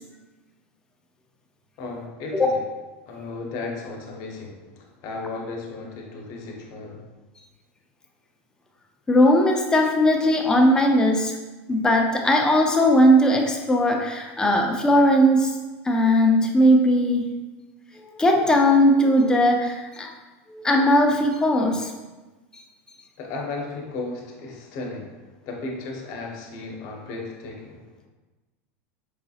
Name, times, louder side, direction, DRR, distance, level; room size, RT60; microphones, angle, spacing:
voice 1, 1.8-2.6 3.1-7.1 23.2-27.9, left 3 dB, 50° left, 0 dB, 0.8 m, -35 dB
voice 2, 9.1-11.4 11.7-15.5 15.8-17.3 18.0-20.1 20.5-21.9, equal, 10° left, 1 dB, 0.5 m, -19 dB
4.9 x 2.7 x 2.4 m, 1.2 s
supercardioid pair, 130°, 7 cm